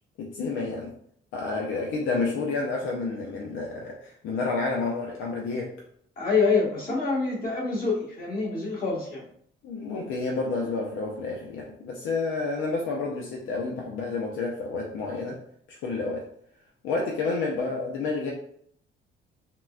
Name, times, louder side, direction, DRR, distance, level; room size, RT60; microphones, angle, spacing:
voice 1, 0.2-0.9 1.3-5.7 9.6-15.4 15.7-16.3 16.8-18.3, left 3 dB, 80° left, -2 dB, 0.6 m, -30 dB
voice 2, 6.2-9.2, left 4 dB, 45° left, -5 dB, 1.4 m, -26 dB
3.8 x 2.1 x 2.3 m, 0.64 s
cardioid pair, 90°, 20 cm